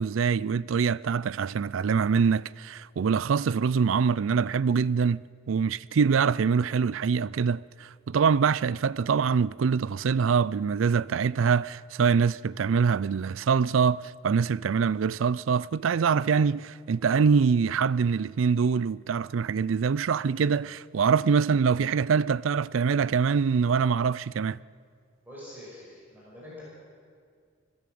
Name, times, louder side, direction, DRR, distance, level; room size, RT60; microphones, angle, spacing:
voice 1, 0.0-5.2 5.5-24.6, right 6 dB, 75° right, 0.4 m, -24 dB
voice 2, 25.3-26.6, left 1 dB, 10° right, 5.9 m, -45 dB
21.0 x 16.5 x 7.8 m
head